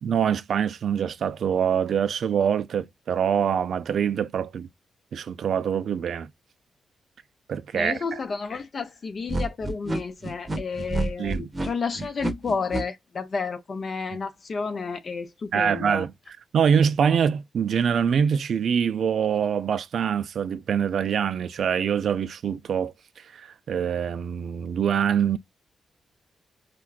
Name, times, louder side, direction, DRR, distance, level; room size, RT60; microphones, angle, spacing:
voice 1, 0.0-4.7 5.1-6.3 7.5-8.2 11.2-11.5 15.5-16.1 16.5-25.4, right 7 dB, 70° right, 0.3 m, -24 dB
voice 2, 7.7-16.0, left 5 dB, 55° left, 0.5 m, -31 dB
sound 1, 9.3-12.8, right 2 dB, 35° right, 0.7 m, -29 dB
4.6 x 2.2 x 2.3 m
cardioid pair, 65°, 0 cm